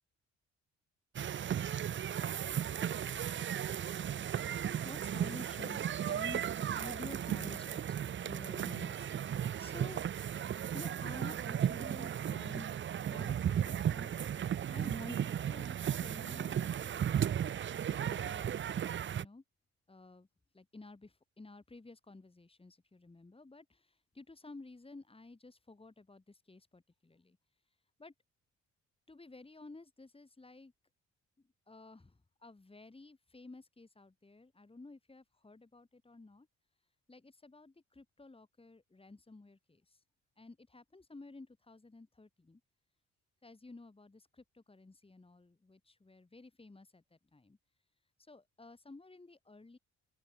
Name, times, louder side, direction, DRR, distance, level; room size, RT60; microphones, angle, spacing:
sound 1, 1.1-19.2, right 9 dB, 40° right, 0.6 m, -35 dB
voice 1, 4.8-6.5 6.7-9.1 9.6-10.0 10.7-16.8 17.6-18.6 19.1-19.4 19.9-20.3 20.5-27.4 28.0-28.1 29.1-30.7 31.7-36.5 37.1-40.0 40.4-42.6 43.4-47.6 48.2-49.8, left 3 dB, 20° left, 6.5 m, -52 dB
open air
cardioid pair, 90°, 30 cm